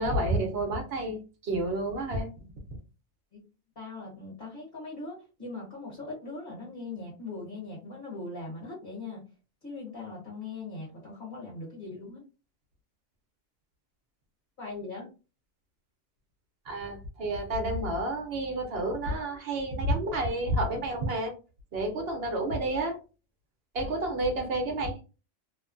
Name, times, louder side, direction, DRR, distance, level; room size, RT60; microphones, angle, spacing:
voice 1, 0.0-2.3 16.7-21.3 21.7-23.0 23.7-25.0, right 1 dB, 60° right, 4 dB, 0.9 m, -30 dB
voice 2, 3.7-9.3 9.6-12.2 14.6-15.1, left 3 dB, 50° left, -5 dB, 1.5 m, -40 dB
2.8 x 2.2 x 2.5 m, 0.32 s
omnidirectional pair, 1.2 m